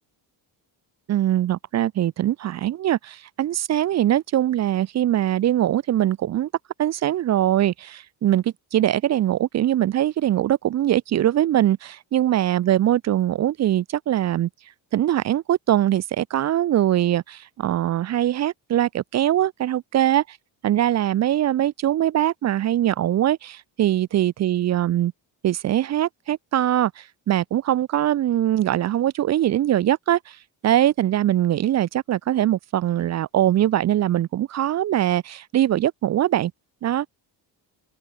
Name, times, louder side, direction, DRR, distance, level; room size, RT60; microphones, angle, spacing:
voice 1, 1.1-6.5 6.8-14.5 14.9-20.2 20.6-25.1 25.4-30.4 30.6-36.5 36.8-37.1, right 12 dB, 40° right, 0.4 m, -22 dB
cardioid pair, 155°, 44 cm